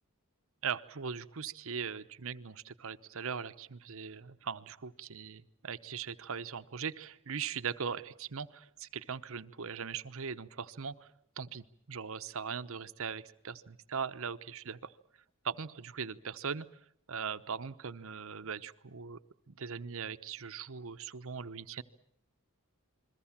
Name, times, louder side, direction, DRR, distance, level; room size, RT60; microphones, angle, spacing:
voice 1, 0.6-11.1 11.4-14.9 15.4-16.7 17.1-19.2 19.5-21.8, right 6 dB, 70° right, 12 dB, 0.9 m, -40 dB
28.5 x 22.0 x 7.3 m, 0.69 s
head